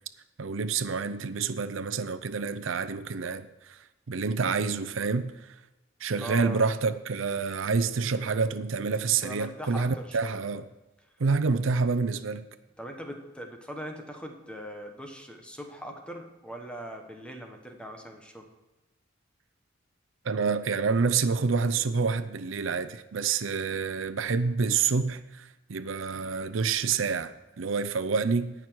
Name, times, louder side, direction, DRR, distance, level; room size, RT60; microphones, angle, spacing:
voice 1, 0.4-3.8 4.1-5.3 6.0-10.7 11.2-12.4 20.2-28.5, right 5 dB, 80° right, 0.6 m, -28 dB
voice 2, 6.2-6.6 9.2-10.4 12.8-18.5, equal, 5° left, 1.3 m, -41 dB
17.5 x 6.0 x 4.6 m
head